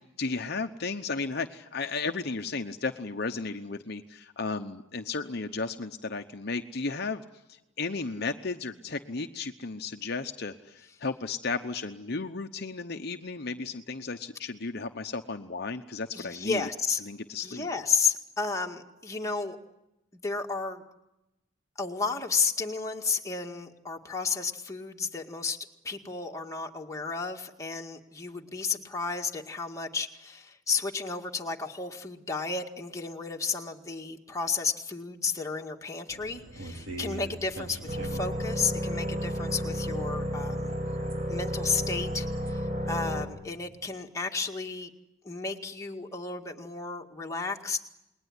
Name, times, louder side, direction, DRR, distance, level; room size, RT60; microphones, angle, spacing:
voice 1, 0.2-7.2 7.5-16.7 17.0-17.7, left 4 dB, 50° left, 6 dB, 0.9 m, -34 dB
voice 2, 16.1-17.0 17.4-19.6 20.1-20.8 21.8-40.7 41.3-44.9 45.2-47.8, left 4 dB, 15° left, 1 dB, 2.0 m, -32 dB
sound 1, 36.1-42.5, right 2 dB, 70° right, 3.7 m, -44 dB
sound 2, 37.9-43.3, equal, 40° right, 5.1 m, -32 dB
29.0 x 21.0 x 9.8 m, 0.93 s
head